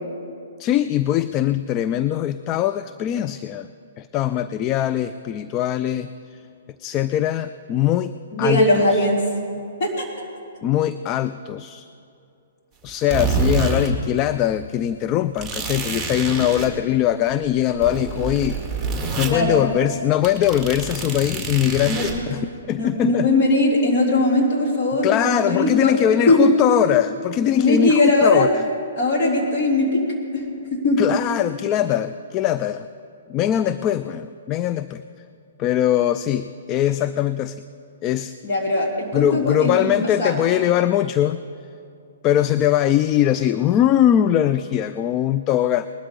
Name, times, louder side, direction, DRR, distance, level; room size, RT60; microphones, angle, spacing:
voice 1, 0.6-3.7 4.0-6.4 6.8-9.1 10.6-11.9 12.8-18.6 19.2-23.3 25.0-28.7 31.0-32.9 33.3-35.0 35.6-37.6 38.0-38.3 39.1-41.4 42.2-45.9, left 11 dB, 30° left, 13 dB, 0.3 m, -21 dB
voice 2, 8.3-9.2 9.8-10.0 19.2-19.6 21.8-22.1 22.7-25.9 26.3-26.5 27.6-28.5 29.0-30.0 30.3-30.4 30.7-31.0 38.4-39.9 40.2-40.3, left 2 dB, 45° left, -2 dB, 3.3 m, -19 dB
sound 1, 12.9-13.9 14.2-14.3 15.4-16.7 17.3-19.3 19.7-19.9 20.2-22.1, right 4 dB, 5° right, 2.1 m, -26 dB
20.0 x 12.5 x 3.8 m, 2.5 s
figure-of-eight pair, 125°, 0 cm